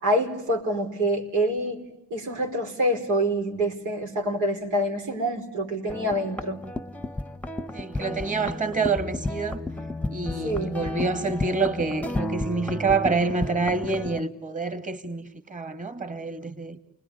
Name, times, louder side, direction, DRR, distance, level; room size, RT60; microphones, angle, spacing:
voice 1, 0.0-1.8 2.1-6.6 10.4-10.7, right 1 dB, 85° right, 4.7 m, -26 dB
sound 1, 5.9-14.2, left 1 dB, 5° left, 1.0 m, -32 dB
voice 2, 7.7-9.6 10.1-16.8, right 4 dB, 25° right, 2.5 m, -27 dB
29.5 x 20.5 x 9.7 m
cardioid pair, 90°, 30 cm